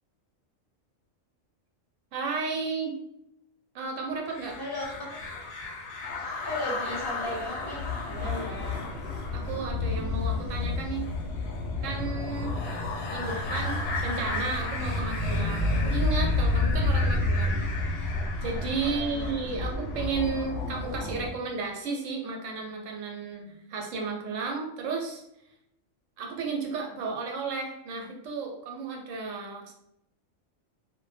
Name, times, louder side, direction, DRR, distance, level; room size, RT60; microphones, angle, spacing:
voice 1, 2.1-3.0 3.7-4.6 8.2-8.4 8.7-8.9 9.3-11.1 11.8-12.6 13.1-17.9 18.4-25.2 26.2-29.7, right 4 dB, 75° right, 1 dB, 0.9 m, -33 dB
sound 1, 4.3-21.3, left 2 dB, 65° left, 0.7 m, -30 dB
voice 2, 4.6-5.5 6.4-8.8 18.8-19.3, left 1 dB, 30° left, -4 dB, 0.5 m, -37 dB
2.2 x 2.0 x 3.2 m, 0.80 s
omnidirectional pair, 1.4 m